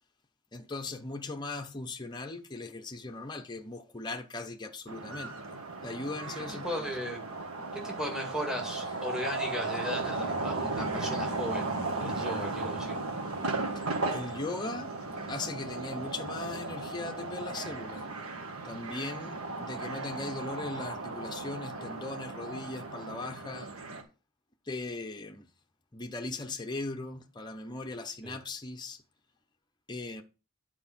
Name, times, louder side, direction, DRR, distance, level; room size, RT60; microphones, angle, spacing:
voice 1, 0.5-5.6 5.8-7.0 13.8-15.0 15.3-18.1 18.6-23.7 24.7-25.5 25.9-29.0 29.9-30.2, left 3 dB, 20° left, 0.7 m, -39 dB
sound 1, 4.9-24.0, right 3 dB, 75° right, 1.6 m, -36 dB
voice 2, 6.4-7.2 7.7-11.7 12.0-13.0 28.2-28.4, equal, 5° right, 2.1 m, -36 dB
9.2 x 4.6 x 5.8 m
head